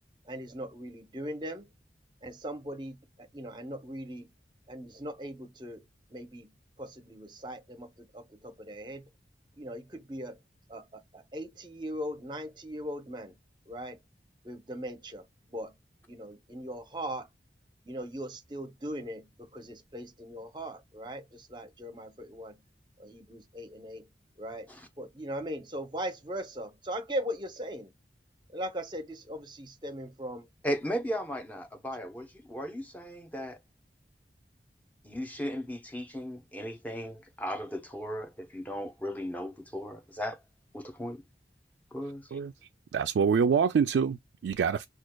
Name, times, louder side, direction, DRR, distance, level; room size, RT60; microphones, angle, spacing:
voice 1, 0.3-1.7 2.2-4.3 4.7-5.9 6.1-9.1 9.6-10.4 10.7-13.4 13.7-14.0 14.4-15.7 16.1-17.3 17.9-22.6 23.0-24.1 24.4-24.7 25.0-27.9 28.5-30.5, equal, 25° right, 0.7 m, -39 dB
voice 2, 30.6-33.6 35.0-40.4 40.7-41.2 41.9-42.3, equal, 10° left, 0.7 m, -36 dB
voice 3, 42.9-44.9, right 6 dB, 90° right, 0.3 m, -26 dB
6.1 x 2.3 x 2.2 m
head